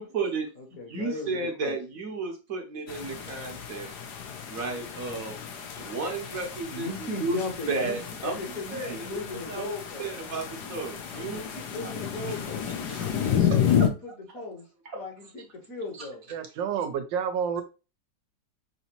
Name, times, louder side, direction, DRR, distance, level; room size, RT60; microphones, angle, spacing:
voice 1, 0.0-0.5 0.9-3.9 4.5-5.3 5.7-7.4 7.7-8.4 8.7-9.2 9.5-9.7 10.0-11.4 11.8-11.9 12.3-12.4 12.9-13.9 14.9-15.0 16.0-16.1, right 4 dB, 55° right, 1.2 m, -33 dB
voice 2, 0.6-1.8 6.4-10.1 11.3-12.7 13.3-14.6 14.9-16.3, left 3 dB, 55° left, 1.5 m, -38 dB
sound 1, 2.9-13.9, left 8 dB, 70° left, 1.2 m, -31 dB
voice 3, 16.3-17.6, right 7 dB, 90° right, 1.5 m, -29 dB
5.8 x 2.7 x 2.8 m
omnidirectional pair, 1.9 m